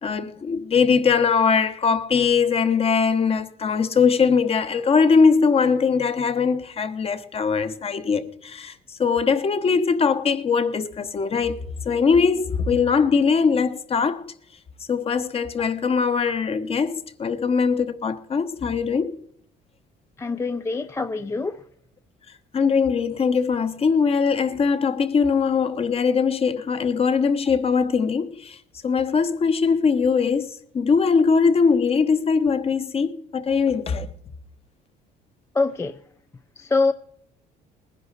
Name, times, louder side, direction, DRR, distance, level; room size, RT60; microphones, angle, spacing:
voice 1, 0.0-14.3 14.9-19.2 22.5-28.6 28.8-34.1, left 5 dB, 35° left, 1.0 m, -21 dB
voice 2, 20.2-21.6 35.5-36.0 36.6-36.9, left 3 dB, 15° left, 0.5 m, -24 dB
19.5 x 10.5 x 4.1 m
cardioid pair, 110°, 17 cm